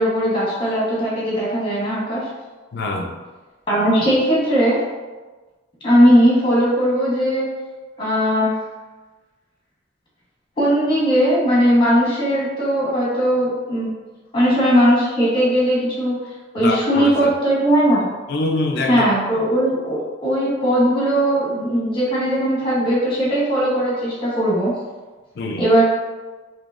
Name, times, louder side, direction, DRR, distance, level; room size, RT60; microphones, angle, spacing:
voice 1, 0.0-2.2 3.7-4.8 5.8-7.5 8.0-8.5 10.6-13.9 14.3-16.2 16.5-18.1 18.9-24.7 25.6-25.8, equal, 25° left, -6 dB, 1.1 m, -18 dB
voice 2, 2.7-3.2 16.6-17.3 18.3-19.0 25.4-25.7, left 2 dB, 55° left, 3 dB, 0.4 m, -24 dB
3.7 x 2.7 x 2.4 m, 1.3 s
head